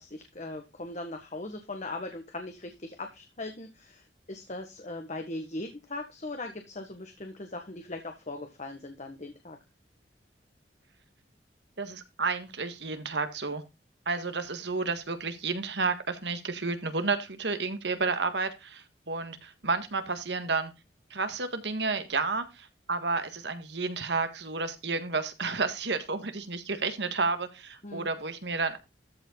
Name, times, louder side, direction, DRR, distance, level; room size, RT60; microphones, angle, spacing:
voice 1, 0.0-9.6 27.8-28.1, left 2 dB, 45° left, 5 dB, 1.5 m, -39 dB
voice 2, 11.8-13.6 14.0-20.7 21.1-28.8, right 4 dB, 75° right, 9 dB, 1.7 m, -31 dB
13.5 x 5.4 x 3.9 m, 0.25 s
head